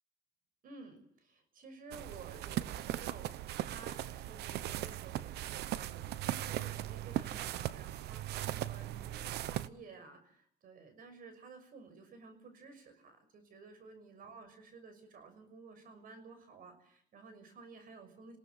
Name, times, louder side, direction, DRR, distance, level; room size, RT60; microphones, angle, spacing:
voice 1, 0.6-18.4, right 4 dB, 55° right, 10 dB, 6.3 m, -54 dB
sound 1, 1.9-9.7, right 13 dB, 75° right, 1.0 m, -38 dB
27.5 x 17.5 x 7.9 m, 0.64 s
cardioid pair, 110°, 17 cm